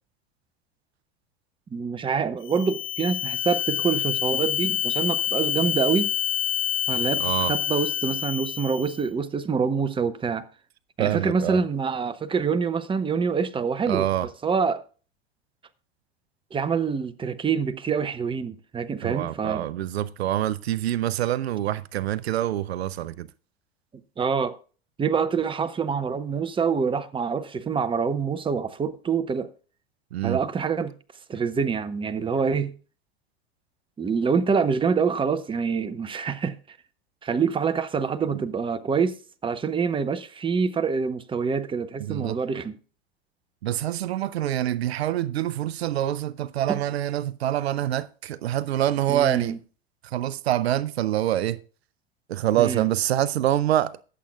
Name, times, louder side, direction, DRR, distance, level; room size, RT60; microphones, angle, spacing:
voice 1, 1.7-6.1 6.9-10.4 11.0-14.8 16.5-19.7 24.2-24.6 25.0-29.5 30.2-30.9 31.3-32.7 34.0-36.8 37.2-42.7 46.7-46.8 49.1-49.6 52.6-52.9, right 5 dB, 15° right, 0.8 m, -26 dB
sound 1, 2.4-9.0, left 9 dB, 40° left, 1.7 m, -27 dB
voice 2, 7.2-7.5 11.0-11.6 13.9-14.3 19.0-23.3 30.1-30.4 38.3-38.4 42.0-42.4 43.6-49.6 50.1-51.6 52.3-54.0, right 12 dB, 80° right, 0.6 m, -26 dB
22.0 x 7.6 x 2.3 m
hypercardioid pair, 90°, 31 cm